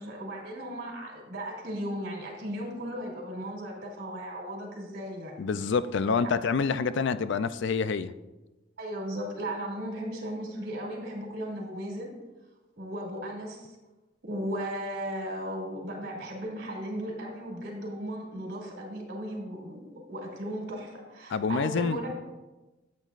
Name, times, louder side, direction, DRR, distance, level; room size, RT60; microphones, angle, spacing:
voice 1, 0.0-5.3 6.2-6.3 7.3-7.4 8.8-12.1 12.8-13.8 14.2-22.1, equal, 60° right, -1 dB, 2.9 m, -36 dB
voice 2, 5.4-8.1 21.3-22.1, left 5 dB, 65° left, 13 dB, 0.4 m, -27 dB
13.0 x 8.3 x 2.5 m, 1.1 s
head